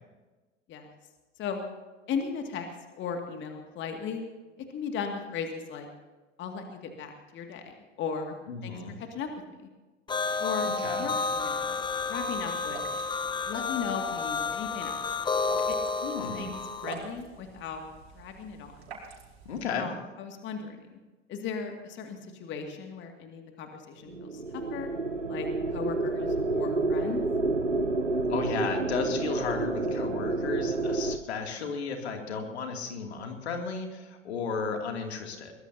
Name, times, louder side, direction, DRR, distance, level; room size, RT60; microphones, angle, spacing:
voice 1, 2.1-2.7 3.0-4.2 4.7-5.9 6.4-8.3 8.6-9.3 10.4-10.7 11.0-11.8 12.1-12.9 13.5-14.9 15.7-15.8 16.1-17.8 18.1-18.8 19.7-21.0 21.3-24.9 25.3-27.2, left 6 dB, 30° left, 4 dB, 2.3 m, -37 dB
voice 2, 8.5-9.0 10.6-11.1 16.0-16.5 19.4-19.9 28.3-35.5, left 5 dB, 60° left, 3 dB, 2.7 m, -34 dB
sound 1, 10.1-16.9, left 4 dB, 15° left, 0.9 m, -31 dB
sound 2, 11.2-19.7, right 5 dB, 60° right, 5.2 m, -48 dB
sound 3, 24.1-31.2, right 3 dB, 90° right, 0.9 m, -29 dB
22.5 x 21.0 x 2.8 m, 1.2 s
figure-of-eight pair, 85°, 36 cm